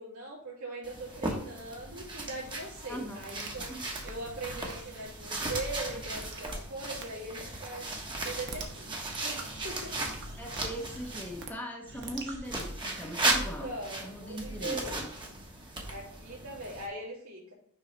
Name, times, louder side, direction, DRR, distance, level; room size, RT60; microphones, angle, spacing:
voice 1, 0.0-3.7 4.0-7.8 8.2-10.1 13.6-15.1 15.8-17.5, right 2 dB, 75° right, -4 dB, 2.9 m, -40 dB
sound 1, 0.8-11.5 12.4-16.9, right 2 dB, 20° right, 1.2 m, -36 dB
sound 2, 2.6-6.7 7.0-7.1 7.6-7.7 8.3-11.5 11.8-12.5, right 3 dB, 55° right, 1.1 m, -45 dB
voice 2, 2.8-3.8 10.4-13.7 14.0-15.1, equal, 10° left, 0 dB, 1.0 m, -40 dB
6.5 x 5.5 x 3.3 m, 0.70 s
head